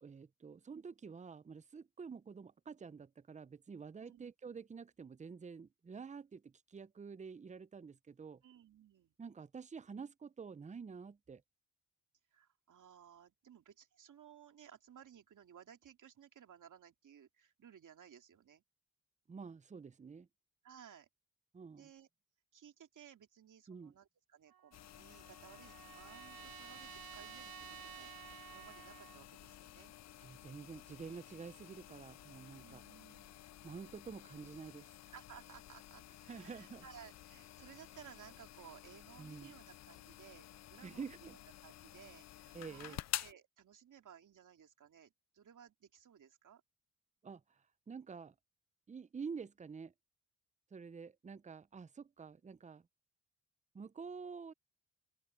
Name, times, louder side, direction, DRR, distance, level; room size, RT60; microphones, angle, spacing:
voice 1, 0.0-8.4 9.2-11.4 19.3-20.3 21.5-21.9 23.7-23.9 30.2-32.8 33.6-35.0 36.3-36.8 39.2-39.5 40.8-41.4 42.5-43.0 47.2-48.3 48.9-49.9 50.7-52.8 53.7-54.5, right 5 dB, 20° right, 0.6 m, -49 dB
voice 2, 4.0-4.3 8.4-9.1 12.3-18.6 20.6-21.1 21.8-22.1 22.5-28.1 28.5-29.9 32.6-33.4 35.1-46.6, right 9 dB, 60° right, 2.5 m, -59 dB
Trumpet, 24.5-29.2, right 10 dB, 75° right, 2.5 m, -53 dB
sound 1, 24.7-43.3, left 13 dB, 50° left, 0.4 m, -51 dB
open air
cardioid pair, 80°, 35 cm